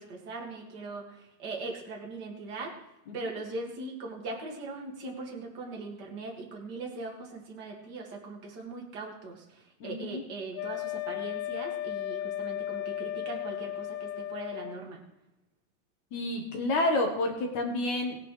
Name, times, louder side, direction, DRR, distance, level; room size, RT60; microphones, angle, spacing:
voice 1, 0.0-2.7 3.1-15.0, right 3 dB, 45° right, -1 dB, 1.3 m, -40 dB
voice 2, 9.8-10.2 16.1-18.2, left 2 dB, 65° left, 1 dB, 1.9 m, -29 dB
Wind instrument woodwind instrument, 10.5-14.8, left 12 dB, 85° left, 2.6 m, -35 dB
20.5 x 9.4 x 3.3 m, 0.92 s
omnidirectional pair, 5.6 m